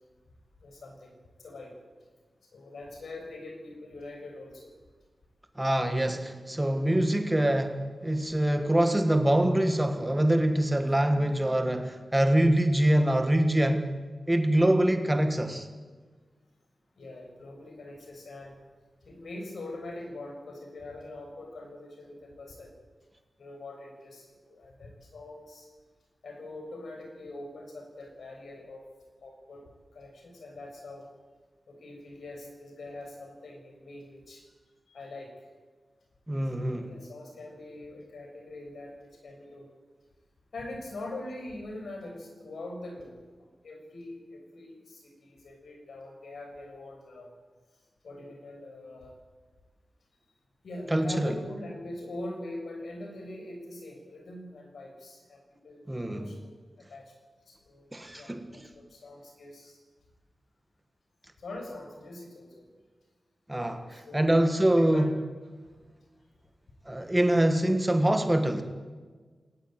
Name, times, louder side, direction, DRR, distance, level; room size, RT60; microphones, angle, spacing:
voice 1, 0.6-1.8 2.5-4.7 15.0-15.1 17.0-18.6 19.0-22.7 23.4-25.7 26.2-28.9 29.2-29.6 29.9-31.1 31.7-34.4 34.9-35.5 36.5-39.7 40.5-43.2 43.6-47.3 48.0-49.2 50.6-56.6 56.9-57.1 57.5-57.9 58.2-59.8 61.4-62.6 63.9-65.1 67.3-67.6, left 2 dB, 75° left, 3 dB, 6.6 m, -43 dB
voice 2, 5.5-13.9 14.3-15.7 36.3-36.9 50.9-51.3 55.9-56.3 57.9-58.7 63.5-65.1 66.8-68.6, right 1 dB, 10° right, 6 dB, 1.7 m, -24 dB
20.5 x 19.5 x 9.0 m, 1.4 s
wide cardioid pair, 170°, 0 cm